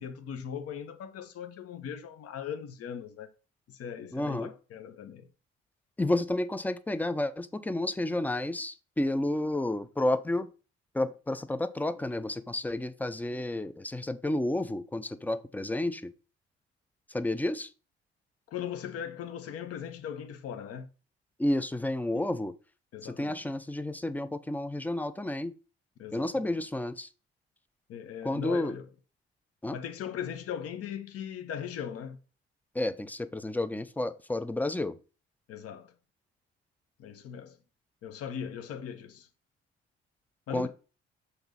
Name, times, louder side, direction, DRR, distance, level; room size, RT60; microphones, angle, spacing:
voice 1, 0.0-3.3 3.7-5.3 18.5-20.9 22.1-22.2 22.9-23.3 26.0-26.6 27.9-28.9 29.7-32.2 35.5-35.9 37.0-37.6 38.0-39.3 40.5-40.7, left 8 dB, 45° left, 0.9 m, -39 dB
voice 2, 4.1-4.5 6.0-10.5 10.9-16.1 17.1-17.7 21.4-22.5 23.0-25.5 26.1-27.1 28.2-28.8 29.6-29.8 32.7-35.0 40.5-40.7, left 1 dB, 5° left, 0.5 m, -31 dB
5.8 x 4.1 x 5.6 m
figure-of-eight pair, 45°, 32 cm